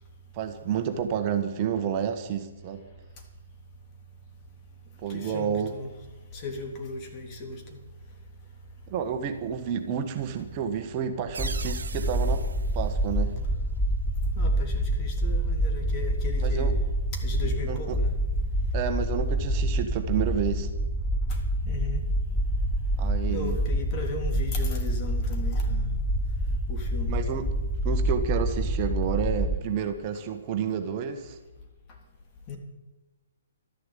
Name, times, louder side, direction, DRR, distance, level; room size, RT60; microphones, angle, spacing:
voice 1, 0.3-2.8 5.0-5.7 8.9-12.4 12.7-13.3 16.4-16.7 17.7-18.0 18.7-20.7 23.0-23.6 27.1-27.5 27.8-31.4, right 8 dB, 35° right, 6 dB, 1.5 m, -30 dB
voice 2, 5.1-5.9 6.3-7.8 14.3-16.8 17.1-18.2 21.7-22.0 23.3-25.9 26.7-27.2 32.5-32.6, left 3 dB, 30° left, 2 dB, 3.4 m, -36 dB
sound 1, 11.3-29.6, right 1 dB, 5° right, 1.0 m, -27 dB
sound 2, 11.3-13.9, right 5 dB, 75° right, 1.3 m, -41 dB
13.0 x 11.5 x 8.4 m, 1.2 s
hypercardioid pair, 135°, 0 cm